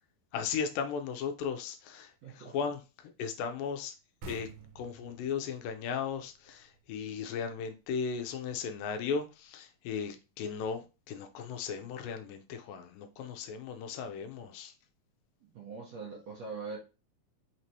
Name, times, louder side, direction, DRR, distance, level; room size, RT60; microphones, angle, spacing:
voice 1, 0.3-2.8 3.2-3.9 4.3-4.5 4.8-14.7, left 6 dB, 80° left, 2.2 m, -36 dB
voice 2, 2.2-2.6 15.5-16.8, right 4 dB, 60° right, 2.0 m, -42 dB
sound 1, 4.2-7.6, right 2 dB, 80° right, 2.7 m, -50 dB
5.8 x 3.1 x 2.7 m
omnidirectional pair, 4.1 m